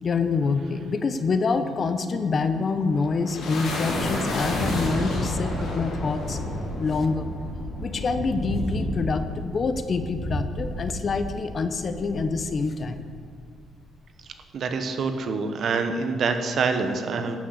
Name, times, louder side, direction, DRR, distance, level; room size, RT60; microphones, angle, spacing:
voice 1, 0.0-6.4 6.8-7.3 7.8-13.0, left 4 dB, 35° left, 9 dB, 0.7 m, -26 dB
sound 1, 2.7-13.3, left 1 dB, 75° left, 3.7 m, -31 dB
voice 2, 14.5-17.4, right 4 dB, 50° right, 7 dB, 1.1 m, -26 dB
12.0 x 6.5 x 8.0 m, 2.1 s
cardioid pair, 130°, 0 cm